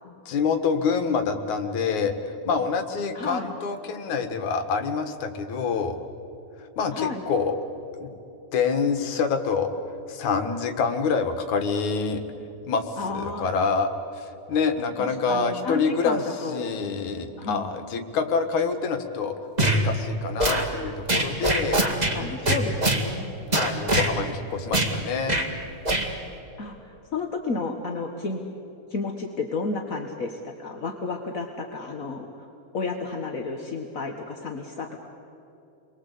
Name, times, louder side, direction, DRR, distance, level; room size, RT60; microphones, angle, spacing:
voice 1, 0.0-6.0 6.8-7.6 8.0-8.1 8.5-9.7 10.1-12.2 12.7-21.9 23.5-25.4, left 5 dB, 75° left, 7 dB, 3.1 m, -26 dB
voice 2, 3.1-3.5 6.9-7.2 13.0-13.5 15.3-16.7 17.4-17.7 21.7-23.4 26.6-28.4 28.9-32.4 32.7-35.1, left 3 dB, 40° left, 2 dB, 1.2 m, -32 dB
sound 1, 19.6-19.8 20.4-20.7 21.1-22.2 22.5-23.0 23.5-24.1 24.7-24.9 25.3-25.5 25.9-26.1, right 1 dB, 15° right, 1.7 m, -22 dB
29.5 x 23.0 x 8.4 m, 2.9 s
omnidirectional pair, 3.5 m